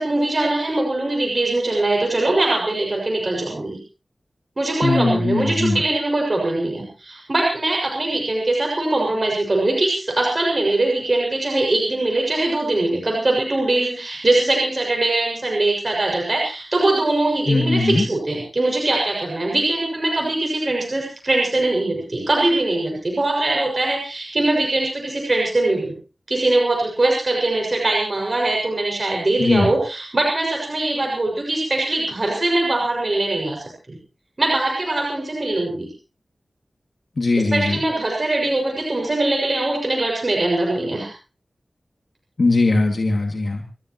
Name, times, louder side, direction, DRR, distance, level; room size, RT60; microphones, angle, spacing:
voice 1, 0.0-3.8 4.6-25.9 26.3-34.0 34.4-35.9 37.4-41.1, right 2 dB, 45° right, -1 dB, 6.5 m, -22 dB
voice 2, 4.8-5.8 17.5-18.0 29.4-29.7 37.2-37.8 42.4-43.6, left 2 dB, 65° left, 2 dB, 2.6 m, -19 dB
29.0 x 14.0 x 3.1 m, 0.35 s
wide cardioid pair, 50°, 0 cm